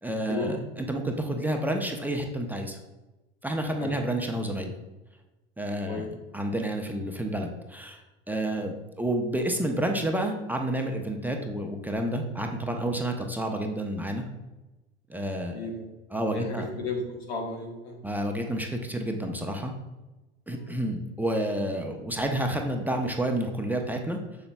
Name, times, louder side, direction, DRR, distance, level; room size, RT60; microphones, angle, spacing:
voice 1, 0.0-2.8 3.4-4.8 5.6-6.1 6.3-14.3 15.1-15.7 16.1-16.6 18.0-19.7 20.5-24.2, right 1 dB, 5° right, 2 dB, 0.7 m, -30 dB
voice 2, 5.6-6.1 8.5-8.6 15.5-15.9 16.3-18.0 20.5-20.7, left 3 dB, 80° left, 0 dB, 1.5 m, -34 dB
6.9 x 6.7 x 2.2 m, 1.1 s
hypercardioid pair, 75°, 31 cm